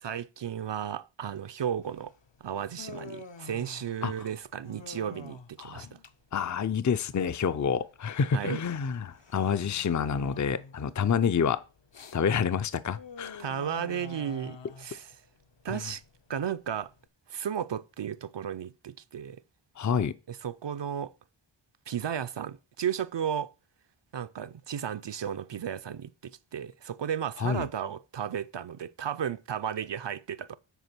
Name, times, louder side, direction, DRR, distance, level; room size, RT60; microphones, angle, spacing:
voice 1, 0.0-2.1 2.4-5.9 8.3-8.6 13.4-15.1 15.6-16.0 16.3-16.9 17.3-19.4 20.3-21.1 21.9-23.5 24.1-30.6, right 8 dB, 60° right, 0.5 m, -34 dB
Human voice, 1.8-17.1, left 4 dB, 60° left, 0.8 m, -48 dB
voice 2, 6.3-11.6 12.1-13.4 15.7-15.8 19.8-20.1 27.4-27.7, left 6 dB, 40° left, 0.5 m, -28 dB
8.1 x 4.8 x 6.0 m
wide cardioid pair, 40°, 49 cm